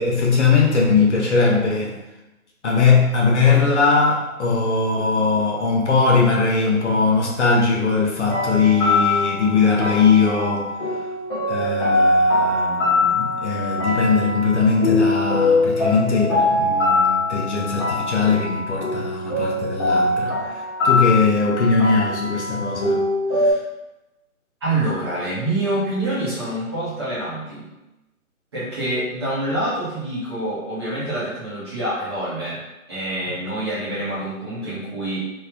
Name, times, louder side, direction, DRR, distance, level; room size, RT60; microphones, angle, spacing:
voice 1, 0.0-2.0 2.6-11.1 11.5-23.6 33.3-33.4, left 4 dB, 50° left, -2 dB, 0.8 m, -20 dB
sound 1, 8.2-23.5, left 2 dB, 20° left, 0.8 m, -22 dB
voice 2, 24.6-27.7 28.5-32.6 32.9-35.2, right 1 dB, 20° right, -11 dB, 0.8 m, -26 dB
3.1 x 2.3 x 3.5 m, 0.99 s
figure-of-eight pair, 150°, 43 cm